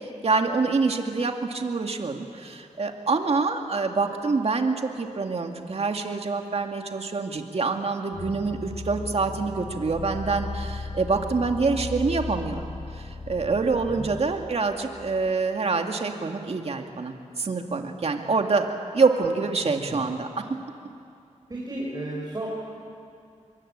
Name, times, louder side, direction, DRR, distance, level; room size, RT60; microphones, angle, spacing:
voice 1, 0.2-12.6 12.9-18.7 18.9-20.3, right 4 dB, 55° right, 4 dB, 2.3 m, -26 dB
sound 1, 8.1-15.3, left 3 dB, 65° left, 4.2 m, -36 dB
voice 2, 21.5-22.5, right 2 dB, 30° right, -4 dB, 6.4 m, -33 dB
25.5 x 23.0 x 8.8 m, 2.4 s
wide cardioid pair, 80°, 13 cm